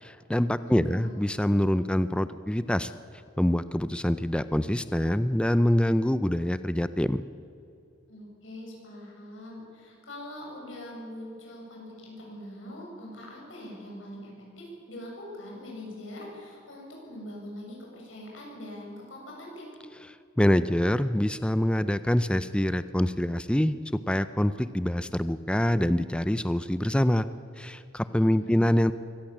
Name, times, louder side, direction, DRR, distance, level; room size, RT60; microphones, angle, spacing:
voice 1, 0.0-2.9 3.4-7.2 20.4-23.8 24.1-27.3 27.6-28.9, left 1 dB, 5° left, 13 dB, 0.4 m, -25 dB
voice 2, 0.6-1.1 8.1-19.7 28.3-28.8, left 1 dB, 85° left, -2 dB, 7.8 m, -43 dB
23.5 x 17.5 x 7.4 m, 2.5 s
head